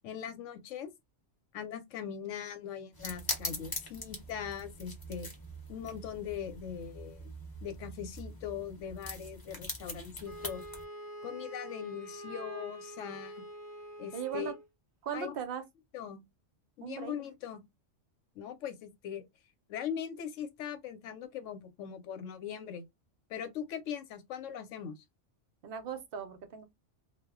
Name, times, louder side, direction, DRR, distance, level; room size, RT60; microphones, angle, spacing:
voice 1, 0.0-0.9 1.5-5.3 5.7-7.3 7.6-10.6 11.2-13.4 14.0-14.5 15.1-15.3 15.9-16.2 16.8-17.6 18.4-19.3 19.7-22.8 23.3-25.0, left 8 dB, 85° left, 0.9 m, -40 dB
sound 1, 2.9-10.8, left 1 dB, 20° left, 0.7 m, -42 dB
Wind instrument woodwind instrument, 10.2-14.7, right 1 dB, 20° right, 0.5 m, -45 dB
voice 2, 14.1-14.5 15.0-15.6 16.8-17.2 25.6-26.6, right 8 dB, 60° right, 0.7 m, -38 dB
2.2 x 2.1 x 3.4 m
omnidirectional pair, 1.3 m